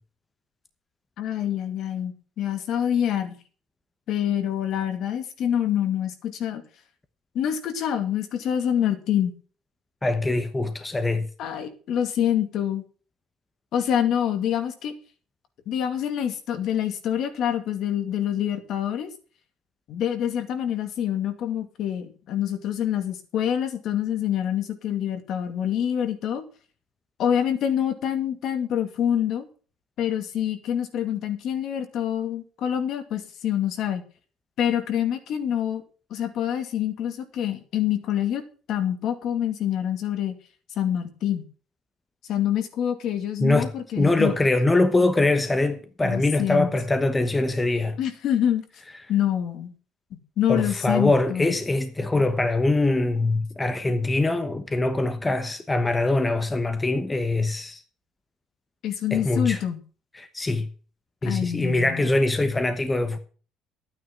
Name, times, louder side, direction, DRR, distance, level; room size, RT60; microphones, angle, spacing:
voice 1, 1.2-3.4 4.1-6.6 7.3-9.3 11.4-12.8 13.7-14.9 15.7-19.1 19.9-26.4 27.2-29.5 30.0-34.0 34.6-35.8 36.1-38.4 38.7-40.4 40.8-41.5 42.3-44.3 46.0-46.7 48.0-48.6 49.1-49.7 50.1-51.5 58.8-59.8 61.2-62.1, left 10 dB, 55° left, 2.3 m, -26 dB
voice 2, 10.0-11.3 43.4-48.0 50.5-57.8 59.1-59.6 60.2-60.7 61.2-63.2, left 2 dB, 10° left, 1.1 m, -23 dB
12.0 x 9.4 x 5.9 m
cardioid pair, 135°, 0 cm